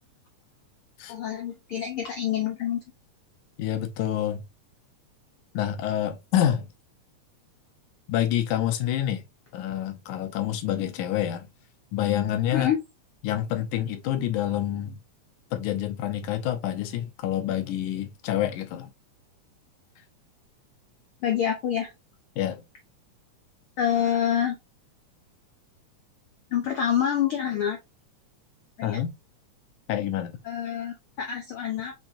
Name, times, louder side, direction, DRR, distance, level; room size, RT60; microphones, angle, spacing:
voice 1, 1.1-2.8 12.5-12.8 21.2-21.9 23.8-24.6 26.5-27.8 28.8-29.0 30.4-31.9, left 9 dB, 70° left, 1.3 m, -27 dB
voice 2, 3.6-4.4 5.5-6.7 8.1-9.2 9.5-11.5 11.9-12.7 13.2-15.0 15.5-18.9 22.4-22.6 28.8-29.1 29.9-30.4, left 11 dB, 90° left, 2.3 m, -27 dB
5.9 x 3.5 x 2.6 m
omnidirectional pair, 3.5 m